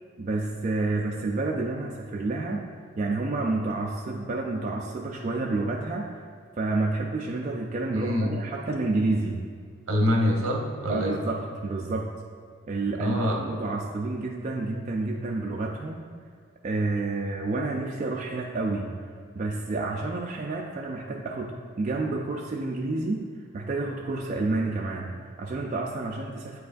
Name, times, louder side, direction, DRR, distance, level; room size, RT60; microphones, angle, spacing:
voice 1, 0.2-2.6 3.0-6.2 6.6-9.4 10.9-12.1 12.6-16.1 16.6-19.1 19.4-23.2 23.5-26.6, right 2 dB, 35° right, -1 dB, 0.3 m, -29 dB
voice 2, 7.9-8.4 9.9-11.2 13.0-13.4, left 1 dB, 70° right, 0 dB, 0.9 m, -25 dB
8.6 x 4.7 x 2.5 m, 2.2 s
head